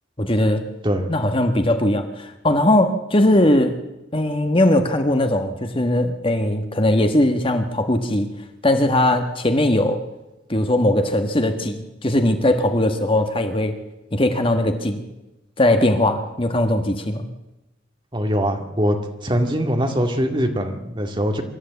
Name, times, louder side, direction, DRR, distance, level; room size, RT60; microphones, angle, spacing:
voice 1, 0.2-0.6 1.1-3.7 4.1-8.3 8.6-10.0 10.5-13.7 14.1-15.0 15.6-17.2, left 1 dB, 30° left, 7 dB, 1.4 m, -19 dB
voice 2, 18.1-19.0 19.2-21.4, equal, 25° right, 4 dB, 2.2 m, -22 dB
25.0 x 13.0 x 8.2 m, 1.0 s
head